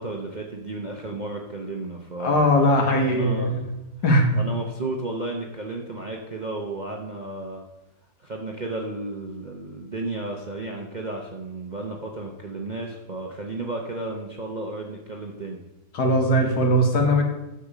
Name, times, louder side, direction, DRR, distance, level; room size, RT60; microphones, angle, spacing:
voice 1, 0.0-2.5 2.8-3.7 4.4-7.6 8.2-15.6, right 2 dB, 35° right, 1 dB, 0.7 m, -33 dB
voice 2, 2.2-3.7 4.0-4.2 15.9-17.2, equal, 70° left, 3 dB, 2.0 m, -20 dB
8.4 x 6.9 x 4.9 m, 0.94 s
omnidirectional pair, 1.8 m